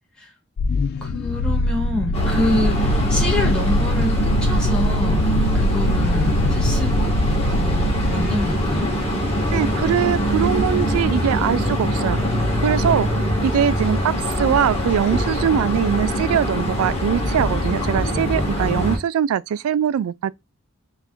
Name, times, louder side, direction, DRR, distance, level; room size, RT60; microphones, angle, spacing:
sound 1, 0.6-8.8, left 1 dB, 50° left, 0.3 m, -22 dB
voice 1, 1.0-7.1 7.5-8.9, left 2 dB, 5° left, 1.1 m, -27 dB
sound 2, 2.1-19.0, equal, 30° left, 1.1 m, -23 dB
voice 2, 9.5-20.3, right 9 dB, 85° right, 0.3 m, -22 dB
3.4 x 2.5 x 4.3 m
head